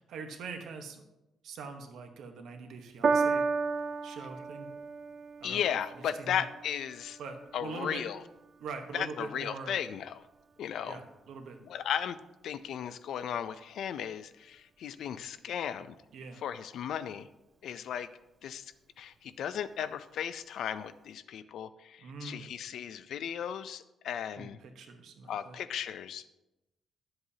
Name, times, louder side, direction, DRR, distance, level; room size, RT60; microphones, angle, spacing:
voice 1, 0.1-1.0 1.4-3.5 4.0-4.7 5.4-5.6 6.2-6.4 7.2-8.0 8.6-9.8 10.9-11.6 16.1-16.4 22.0-22.5 24.3-25.6, right 4 dB, 80° right, 5 dB, 1.1 m, -43 dB
Piano, 3.0-9.6 10.4-10.5, right 4 dB, 35° right, 0.5 m, -34 dB
voice 2, 5.4-7.2 7.5-8.2 8.9-10.2 10.6-11.0 11.6-12.2 12.4-16.0 16.4-17.3 17.6-18.1 18.4-24.6 25.3-26.3, left 9 dB, 70° left, 13 dB, 0.4 m, -36 dB
11.5 x 7.8 x 2.8 m, 0.95 s
cardioid pair, 155°, 0 cm